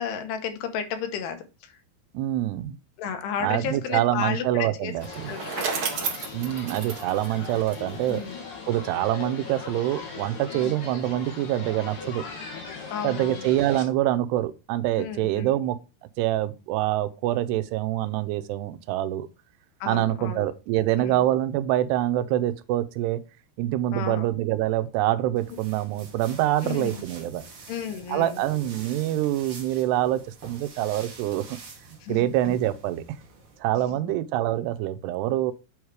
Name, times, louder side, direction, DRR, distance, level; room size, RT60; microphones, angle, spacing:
voice 1, 0.0-1.7 3.0-4.9 5.3-5.8 8.1-8.4 10.5-10.7 12.9-13.5 15.0-15.6 19.8-20.4 21.0-21.2 23.9-24.3 26.6-27.0 27.7-28.4 32.0-32.3 33.8-34.1, left 8 dB, 85° left, 3.2 m, -33 dB
voice 2, 2.1-2.8 3.4-5.4 6.3-8.2 8.7-12.2 13.0-15.8 16.2-19.3 19.9-23.2 23.6-27.4 28.1-31.5 31.9-33.0 33.6-35.5, right 14 dB, 85° right, 2.8 m, -25 dB
sound 1, 5.0-13.8, left 4 dB, 60° left, 3.9 m, -39 dB
Bicycle, 5.0-8.2, right 5 dB, 65° right, 1.4 m, -32 dB
sound 2, 25.4-33.6, right 4 dB, 45° right, 1.8 m, -46 dB
7.9 x 4.7 x 4.9 m
omnidirectional pair, 4.8 m